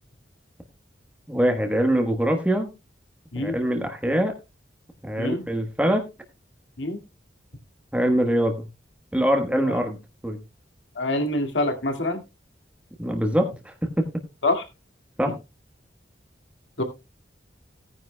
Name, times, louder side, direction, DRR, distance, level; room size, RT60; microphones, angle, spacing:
voice 1, 1.3-2.7 3.3-4.3 5.0-6.0 7.9-8.6 9.1-10.0 10.2-10.4 13.0-14.1 15.2-15.3, right 1 dB, 5° right, 3 dB, 1.2 m, -23 dB
voice 2, 11.0-12.2 14.4-14.6 16.8-16.9, left 2 dB, 85° left, 5 dB, 2.1 m, -25 dB
17.5 x 9.7 x 2.2 m, 0.25 s
head